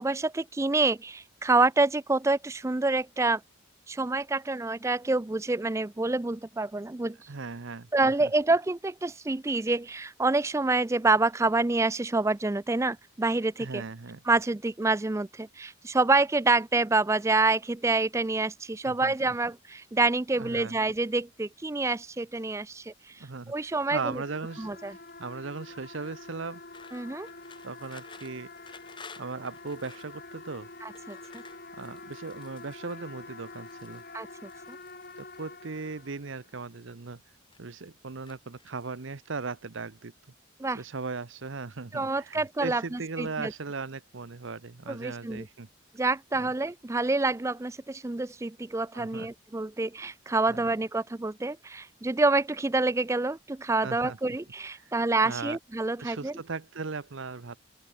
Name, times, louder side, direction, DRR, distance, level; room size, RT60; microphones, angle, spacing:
voice 1, 0.0-3.4 3.9-7.2 7.9-13.8 14.3-24.2 24.6-25.0 26.9-27.3 30.8-31.4 34.1-34.8 40.6-40.8 41.9-43.5 44.9-45.5 45.9-56.3, right 3 dB, 15° right, 0.3 m, -27 dB
voice 2, 7.3-8.3 13.6-14.2 18.8-19.1 20.4-20.8 23.2-24.7 25.2-26.6 27.6-28.5 29.2-30.7 31.7-34.0 35.2-37.2 37.6-40.1 40.7-45.7 46.4-46.5 48.9-49.3 50.5-50.7 53.8-54.4 54.8-54.9 55.2-55.6 56.0-57.6, right 4 dB, 65° right, 0.8 m, -38 dB
sound 1, 23.8-36.5, left 3 dB, 45° left, 6.3 m, -47 dB
sound 2, 26.7-30.1 30.8-32.9 33.4-34.1 34.5-35.4 36.3-37.0 37.3-37.8 38.3-39.0, left 5 dB, 20° left, 2.9 m, -52 dB
open air
head